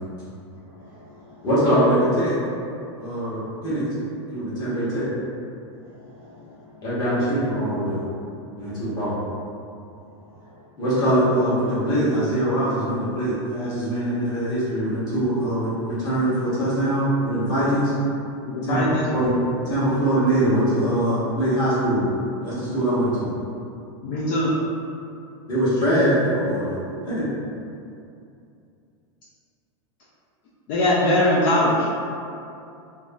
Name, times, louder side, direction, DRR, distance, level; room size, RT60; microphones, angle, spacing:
voice 1, 0.5-1.5 3.2-3.3 4.5-4.7 5.7-6.8 10.0-10.6, left 2 dB, 15° right, -10 dB, 0.8 m, -51 dB
voice 2, 1.4-2.3 3.0-3.9 4.3-5.1 6.8-8.0 8.6-9.1 10.8-17.9 18.7-18.8 19.1-19.4 19.7-22.0 22.4-23.3 25.5-26.8 27.1-27.2, right 1 dB, 25° left, -11 dB, 1.2 m, -22 dB
voice 3, 18.4-19.1 24.0-24.5 30.7-31.9, left 1 dB, 45° left, -7 dB, 0.4 m, -21 dB
3.3 x 2.6 x 2.3 m, 2.5 s
supercardioid pair, 165°, 15 cm